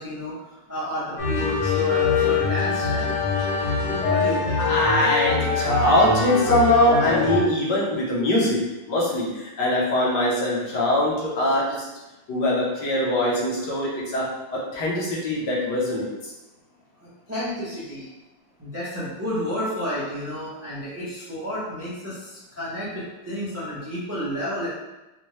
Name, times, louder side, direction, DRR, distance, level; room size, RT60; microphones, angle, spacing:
voice 1, 0.0-3.0 4.0-4.6 17.0-18.1 18.6-24.7, equal, 20° right, -9 dB, 0.4 m, -31 dB
sound 1, 1.2-7.4, left 4 dB, 45° left, 1.2 m, -23 dB
voice 2, 4.6-11.9 12.3-16.3, left 1 dB, 65° left, -4 dB, 1.4 m, -22 dB
4.3 x 2.2 x 3.1 m, 1.0 s
omnidirectional pair, 2.1 m